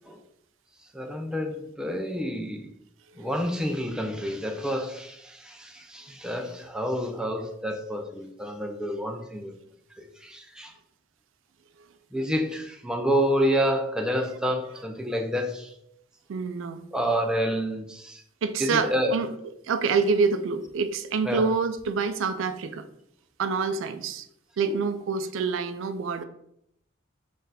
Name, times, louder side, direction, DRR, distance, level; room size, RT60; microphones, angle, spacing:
voice 1, 0.9-2.7 3.2-9.5 10.0-10.7 12.1-15.7 16.9-18.2 18.6-19.2 21.3-21.5 24.7-24.8, equal, 5° right, 4 dB, 0.4 m, -28 dB
voice 2, 16.3-16.8 18.4-19.3 19.7-22.9 23.4-24.3 24.6-26.2, right 5 dB, 85° right, 10 dB, 0.4 m, -26 dB
4.0 x 2.5 x 4.0 m, 0.73 s
head